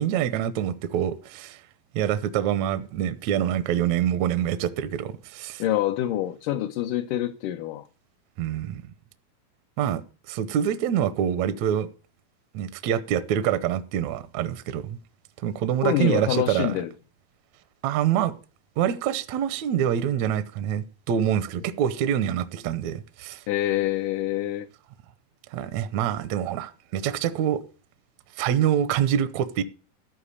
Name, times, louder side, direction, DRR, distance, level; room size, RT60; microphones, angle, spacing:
voice 1, 0.0-1.6 1.9-5.6 8.4-8.8 9.8-10.0 10.3-11.9 12.5-15.0 15.4-16.8 17.8-18.3 18.8-23.4 25.5-27.6 28.4-29.6, right 10 dB, 75° right, 1.7 m, -25 dB
voice 2, 5.6-7.9 15.8-16.9 23.5-24.7, left 13 dB, 75° left, 2.2 m, -26 dB
13.5 x 4.7 x 8.5 m
omnidirectional pair, 4.0 m